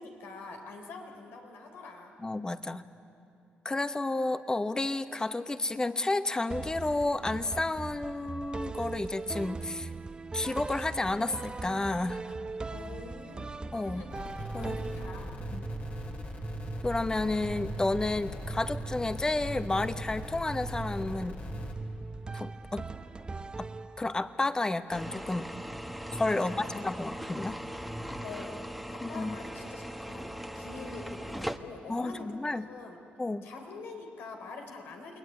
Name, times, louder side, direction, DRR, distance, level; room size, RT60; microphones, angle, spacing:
voice 1, 0.0-2.1 12.7-15.4 26.3-26.8 28.2-28.6 28.9-33.0 33.4-35.2, left 3 dB, 80° left, 3 dB, 3.9 m, -45 dB
voice 2, 2.2-2.9 3.6-9.9 10.3-12.2 13.7-14.1 14.5-14.7 15.5-15.6 16.8-21.4 22.3-22.9 23.6-23.7 24.0-25.5 26.1-27.6 29.0-29.4 31.9-32.7 33.2-33.5, left 2 dB, 20° left, 11 dB, 1.1 m, -31 dB
In Other News, 6.5-24.3, right 3 dB, 25° right, 1.0 m, -40 dB
sound 1, 14.1-21.7, left 2 dB, 45° left, 3.7 m, -41 dB
sound 2, 24.9-31.6, equal, ahead, 1.2 m, -39 dB
29.0 x 20.0 x 9.7 m, 2.5 s
cardioid pair, 85°, 4 cm